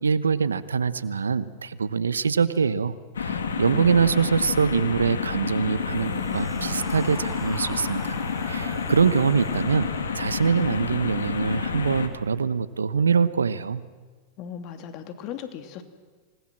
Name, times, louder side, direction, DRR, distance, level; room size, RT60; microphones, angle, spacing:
voice 1, 0.0-8.2 8.4-9.9 10.1-13.8, right 6 dB, 90° right, 16 dB, 1.0 m, -24 dB
sound 1, 3.1-12.1, left 6 dB, 85° left, 2.4 m, -29 dB
sound 2, 5.6-10.8, right 1 dB, 10° right, 7.6 m, -42 dB
voice 2, 14.4-15.8, left 9 dB, 50° left, 8 dB, 2.9 m, -37 dB
27.5 x 19.5 x 7.6 m, 1.4 s
hypercardioid pair, 100°, 0 cm